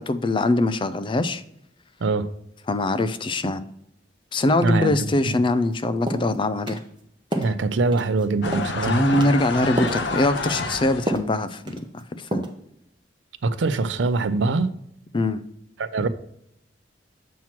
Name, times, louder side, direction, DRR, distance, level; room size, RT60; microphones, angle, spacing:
voice 1, 0.0-1.4 2.7-3.7 4.3-6.8 8.8-12.4 15.1-15.4, left 2 dB, 30° left, 0.4 m, -23 dB
voice 2, 4.6-5.3 7.4-9.1 13.4-14.7 15.8-16.1, right 3 dB, 85° right, 0.5 m, -23 dB
sound 1, 5.6-5.7 6.1-6.3 6.7-6.8 7.3-7.5 7.9-8.2 8.5-8.8 9.1-9.4 9.8-10.0 10.4-10.6 11.1-11.3 11.7-12.0 12.3-12.6, right 1 dB, 25° right, 0.8 m, -28 dB
sound 2, 8.4-11.2, left 3 dB, 70° left, 0.7 m, -29 dB
7.2 x 3.0 x 5.8 m
head